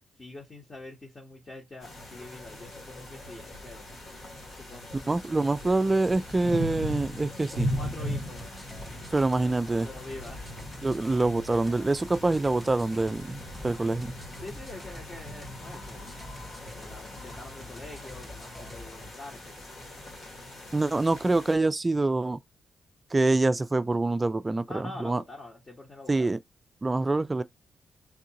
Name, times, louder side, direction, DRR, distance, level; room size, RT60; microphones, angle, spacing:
voice 1, 0.2-3.9 4.6-5.1 7.5-8.5 9.4-9.6 9.8-10.4 14.4-19.7 24.7-26.3, left 2 dB, 35° left, 1.0 m, -45 dB
sound 1, 1.8-21.5, left 1 dB, 65° left, 1.6 m, -39 dB
voice 2, 5.1-7.7 9.1-9.9 10.8-14.1 20.7-22.4 23.1-25.2 26.1-26.4 26.8-27.4, right 2 dB, 25° right, 0.3 m, -25 dB
sound 2, 8.4-19.1, left 1 dB, 5° left, 0.7 m, -47 dB
3.5 x 2.5 x 2.8 m
cardioid pair, 85°, 0 cm